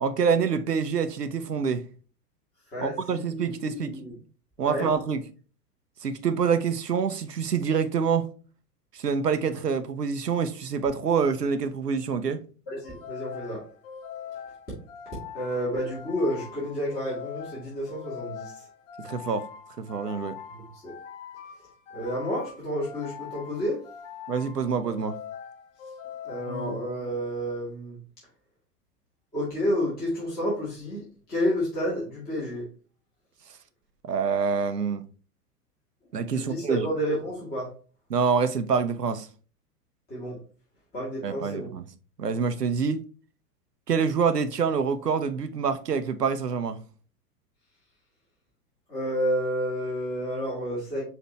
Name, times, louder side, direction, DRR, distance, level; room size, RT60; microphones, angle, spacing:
voice 1, 0.0-1.8 2.8-4.0 4.6-5.2 6.0-8.3 8.9-12.4 19.0-19.5 19.8-20.4 24.3-25.2 34.0-35.0 36.1-36.9 38.1-39.3 41.2-41.8 42.2-43.0 43.9-46.8, right 6 dB, 85° right, 0.6 m, -26 dB
voice 2, 2.7-4.1 4.6-4.9 12.7-13.7 15.3-18.7 20.7-20.9 21.9-23.8 26.2-28.0 29.3-32.7 36.3-37.7 40.1-40.4 40.9-41.8 48.9-51.0, equal, 20° left, 1.9 m, -30 dB
sound 1, 12.8-27.4, left 7 dB, 50° left, 0.9 m, -42 dB
5.6 x 2.9 x 3.1 m
figure-of-eight pair, 95°, 47 cm